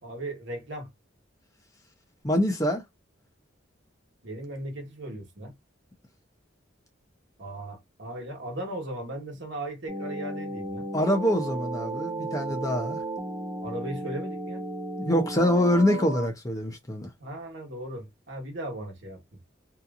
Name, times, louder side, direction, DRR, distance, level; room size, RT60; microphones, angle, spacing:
voice 1, 0.0-0.9 4.2-5.5 7.4-10.9 13.6-14.6 17.2-19.2, right 1 dB, 65° right, 1.1 m, -37 dB
voice 2, 2.2-2.8 10.9-13.0 15.0-17.1, equal, 15° left, 0.6 m, -25 dB
sound 1, 9.9-16.3, right 1 dB, 20° right, 0.6 m, -34 dB
2.8 x 2.5 x 2.4 m
head